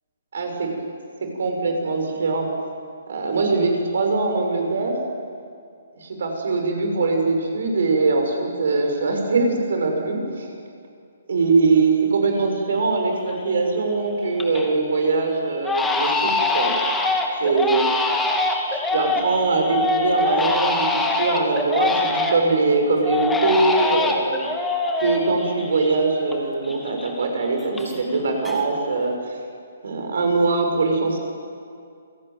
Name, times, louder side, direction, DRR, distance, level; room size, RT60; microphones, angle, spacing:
voice 1, 0.3-0.7 1.2-2.5 3.1-4.9 6.0-10.5 11.3-16.7 17.4-17.9 18.7-24.5 25.0-29.4 29.8-31.2, right 3 dB, 65° right, 3 dB, 6.6 m, -22 dB
Crying sobbing, 12.5-12.6 13.0-13.5 13.9-14.7 15.0-15.2 15.6-22.6 23.0-26.4 26.6-28.2 28.4-29.0, left 3 dB, 5° left, 2.7 m, -24 dB
27.5 x 17.5 x 9.4 m, 2.3 s
figure-of-eight pair, 135°, 0 cm